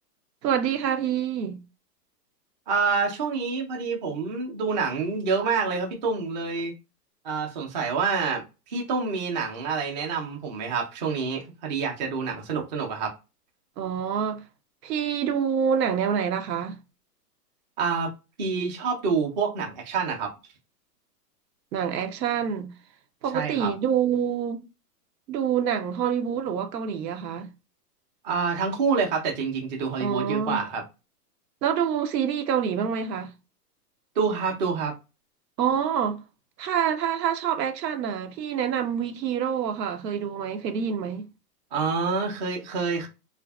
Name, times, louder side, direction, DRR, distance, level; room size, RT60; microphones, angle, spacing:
voice 1, 0.4-1.6 13.8-14.4 14.8-16.8 21.7-22.7 23.2-24.6 25.3-27.5 30.0-30.6 31.6-33.3 35.6-36.2 36.6-41.3, right 8 dB, 90° right, 0.7 m, -26 dB
voice 2, 2.7-6.7 7.2-13.1 17.8-18.1 18.4-20.3 23.3-23.7 28.2-30.8 34.2-34.9 41.7-43.1, right 5 dB, 30° right, 0.5 m, -27 dB
2.5 x 2.4 x 2.3 m
hypercardioid pair, 155°, 48 cm